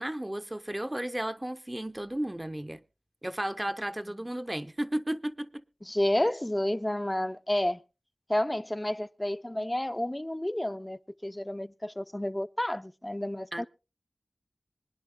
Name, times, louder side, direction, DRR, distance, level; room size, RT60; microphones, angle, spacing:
voice 1, 0.0-2.8 3.2-5.6 13.5-13.7, right 1 dB, 20° right, 0.8 m, -34 dB
voice 2, 5.8-7.8 8.3-13.7, left 1 dB, 20° left, 0.6 m, -30 dB
25.0 x 10.0 x 2.2 m
wide cardioid pair, 50°, 0 cm